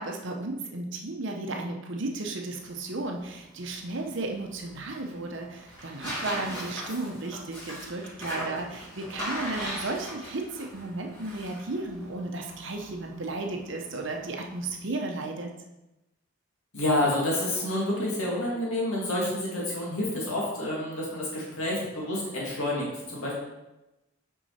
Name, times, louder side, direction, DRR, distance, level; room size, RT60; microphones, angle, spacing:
voice 1, 0.0-15.5, right 2 dB, 55° right, 2 dB, 0.8 m, -34 dB
Tearing, 2.5-14.8, equal, 20° left, 2.4 m, -40 dB
voice 2, 16.7-23.3, left 1 dB, 75° left, -4 dB, 1.7 m, -28 dB
6.0 x 4.7 x 4.2 m, 0.96 s
head